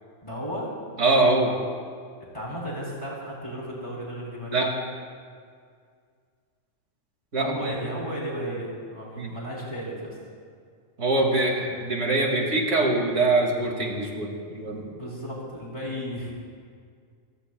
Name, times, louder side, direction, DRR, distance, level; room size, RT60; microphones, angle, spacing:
voice 1, 0.2-0.7 2.3-4.7 7.4-10.2 14.7-16.3, equal, 25° left, -5 dB, 3.6 m, -34 dB
voice 2, 1.0-1.6 4.5-4.7 7.3-7.7 9.2-9.3 11.0-14.9, right 2 dB, 65° right, 0 dB, 2.6 m, -23 dB
27.5 x 17.0 x 2.3 m, 2.1 s
omnidirectional pair, 1.3 m